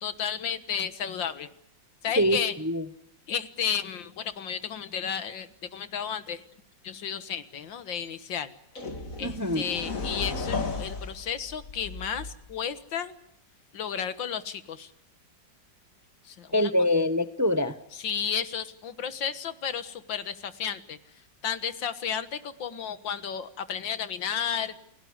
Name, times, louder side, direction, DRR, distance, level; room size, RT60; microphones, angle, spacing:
voice 1, 0.0-1.5 2.0-2.5 3.3-6.4 6.8-8.5 9.2-13.2 13.7-14.9 16.3-16.7 18.0-21.0 21.4-24.7, left 8 dB, 90° left, 12 dB, 2.2 m, -33 dB
voice 2, 2.2-2.8 9.2-9.6 16.5-17.8, left 1 dB, 15° right, 12 dB, 0.7 m, -25 dB
sound 1, 7.9-8.1 8.7-12.5, left 3 dB, 45° left, 2.8 m, -34 dB
29.0 x 17.5 x 9.6 m, 0.71 s
omnidirectional pair, 2.0 m